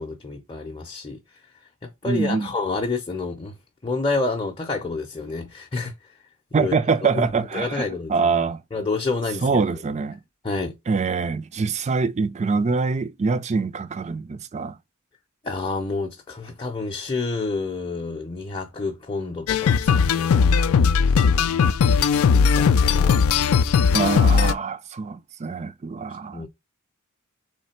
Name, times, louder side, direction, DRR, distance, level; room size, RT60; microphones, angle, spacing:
voice 1, 0.0-1.5 1.8-3.6 3.8-6.2 6.5-6.7 7.1-8.4 8.7-9.8 10.4-10.8 15.4-23.3 26.3-26.5, left 3 dB, 25° left, 0.6 m, -29 dB
voice 2, 2.1-2.5 6.5-8.6 9.4-10.2 10.9-14.8 23.9-26.5, right 4 dB, 30° right, 0.4 m, -24 dB
sound 1, 19.5-24.5, left 6 dB, 70° left, 0.4 m, -18 dB
3.6 x 3.2 x 4.2 m
head